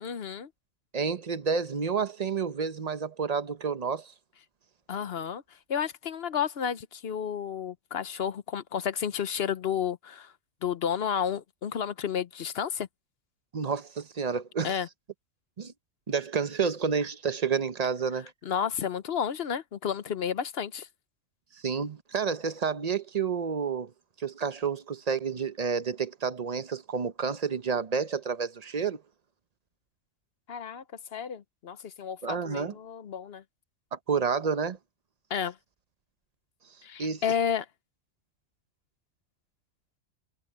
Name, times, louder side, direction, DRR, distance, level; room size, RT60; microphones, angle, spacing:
voice 1, 0.0-0.5 4.9-5.4 5.7-10.3 10.6-12.9 14.6-14.9 18.4-20.9 30.5-30.8 31.1-33.4 35.3-35.5 36.8-37.7, left 8 dB, 55° left, 0.9 m, -31 dB
voice 2, 0.9-4.1 13.5-14.8 15.6-15.7 16.1-18.3 21.6-23.9 24.2-29.0 32.2-32.8 33.9-34.8 37.0-37.2, right 6 dB, 35° right, 0.8 m, -30 dB
omnidirectional pair, 1.3 m